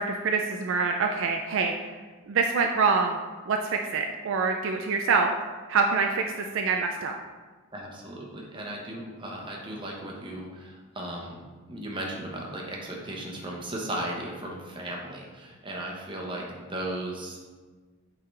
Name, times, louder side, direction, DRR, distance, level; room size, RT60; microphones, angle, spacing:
voice 1, 0.0-1.9 2.3-3.2 3.5-5.3 5.7-6.2 6.5-7.2, right 4 dB, 55° right, 3 dB, 0.3 m, -25 dB
voice 2, 7.7-11.4 11.7-17.5, right 1 dB, 20° right, -2 dB, 0.9 m, -36 dB
8.6 x 3.8 x 3.2 m, 1.4 s
head